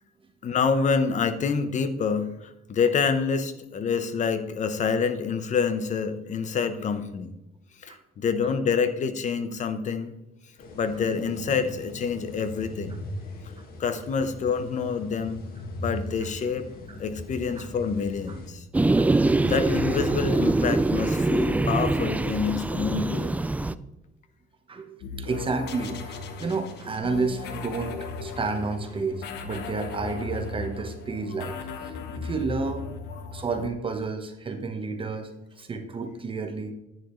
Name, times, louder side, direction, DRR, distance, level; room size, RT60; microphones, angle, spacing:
voice 1, 0.4-7.3 7.8-10.1 10.7-13.0 13.8-15.4 15.8-16.7 17.0-18.6 19.4-23.4, left 5 dB, 45° left, 11 dB, 1.0 m, -27 dB
Inside The Cormarant Bird Hide At The Ackerdijkse Plassen, 10.6-18.5, left 1 dB, 65° left, 2.0 m, -39 dB
sound 1, 18.7-23.7, right 2 dB, 10° right, 0.3 m, -24 dB
voice 2, 24.7-32.9 33.3-36.7, right 4 dB, 30° right, 5 dB, 1.2 m, -31 dB
sound 2, 25.0-33.7, left 4 dB, 80° left, 1.2 m, -37 dB
10.5 x 9.5 x 3.2 m, 0.93 s
cardioid pair, 110°, 17 cm